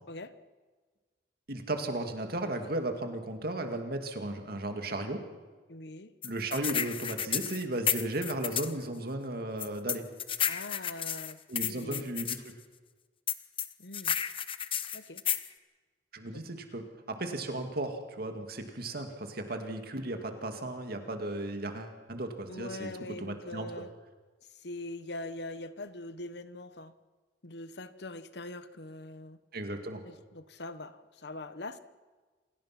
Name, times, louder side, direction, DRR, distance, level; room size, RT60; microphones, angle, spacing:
voice 1, 1.5-5.2 6.2-10.0 11.5-12.6 16.1-22.9 23.2-23.7 29.5-30.0, right 2 dB, 60° right, 5 dB, 2.3 m, -35 dB
voice 2, 5.7-6.1 10.5-12.1 13.8-14.2 14.9-15.2 16.3-16.4 22.5-23.9 24.5-26.9 27.4-29.4 30.0-31.8, left 2 dB, 70° left, 13 dB, 1.1 m, -42 dB
sound 1, 6.2-8.7 9.6-12.4 13.3-15.5, left 9 dB, 30° left, 0.8 m, -32 dB
27.5 x 17.5 x 6.0 m, 1.4 s
head